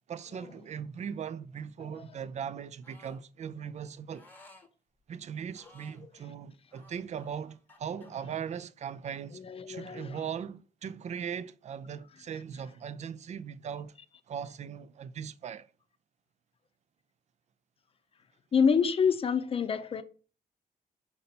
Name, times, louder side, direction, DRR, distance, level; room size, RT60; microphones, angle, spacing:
voice 1, 0.1-4.3 5.1-14.0 14.3-15.7, right 7 dB, 45° right, 0.4 m, -39 dB
voice 2, 1.8-2.2 6.0-6.1 9.3-10.2 18.5-20.0, left 6 dB, 35° left, 0.6 m, -28 dB
sound 1, 2.8-3.2 4.1-4.7 5.5-6.1 6.7-8.1, left 2 dB, 10° left, 1.0 m, -57 dB
5.4 x 4.1 x 5.8 m
wide cardioid pair, 145°, 16 cm